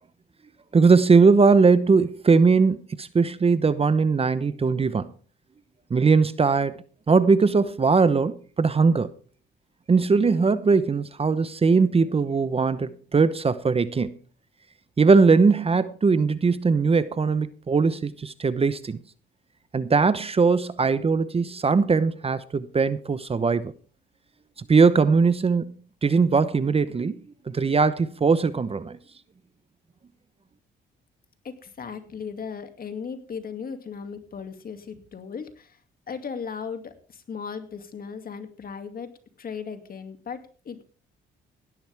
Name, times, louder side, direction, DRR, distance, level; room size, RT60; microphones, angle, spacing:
voice 1, 0.7-5.1 5.9-6.8 7.1-9.1 9.9-14.2 15.0-19.0 19.7-23.7 24.7-25.7 26.0-27.2 27.5-29.0, right 4 dB, 30° right, 0.9 m, -20 dB
voice 2, 31.4-35.8 36.1-39.1 39.4-40.8, left 6 dB, 50° left, 2.4 m, -37 dB
17.0 x 12.0 x 3.5 m
cardioid pair, 90°, 20 cm